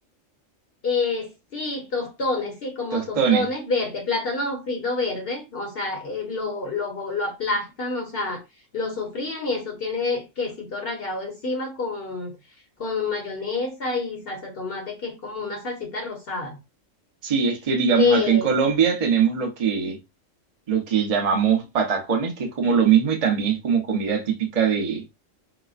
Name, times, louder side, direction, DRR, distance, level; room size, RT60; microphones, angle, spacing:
voice 1, 0.8-8.4 8.7-12.3 12.8-16.6 18.0-18.5, left 3 dB, 50° left, 1.0 m, -28 dB
voice 2, 2.9-3.5 17.2-20.0 20.7-25.0, right 6 dB, 35° right, 0.7 m, -21 dB
4.8 x 2.1 x 2.4 m
omnidirectional pair, 1.4 m